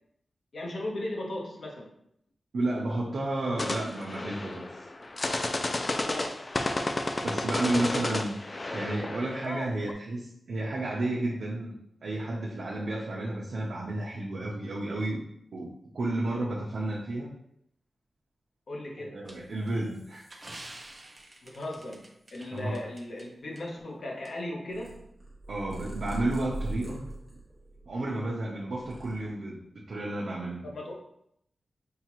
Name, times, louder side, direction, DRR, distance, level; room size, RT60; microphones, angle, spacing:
voice 1, 0.5-1.9 6.0-6.5 18.7-19.2 21.4-25.0 30.6-30.9, left 1 dB, 60° left, -1 dB, 0.9 m, -37 dB
voice 2, 2.5-4.6 7.2-11.7 12.0-15.2 15.5-17.3 19.0-20.2 22.5-22.8 25.5-27.1 27.9-29.6 29.9-30.7, right 2 dB, 65° right, -4 dB, 0.6 m, -32 dB
sound 1, 3.6-9.9, left 2 dB, 30° left, 0.3 m, -32 dB
sound 2, 19.2-23.2 23.6-23.7 24.2-24.3, right 1 dB, 25° right, 0.5 m, -48 dB
Purr, 24.7-28.2 28.6-29.7, right 2 dB, 5° right, 1.1 m, -40 dB
5.6 x 2.4 x 3.0 m, 0.73 s
wide cardioid pair, 155°, 0 cm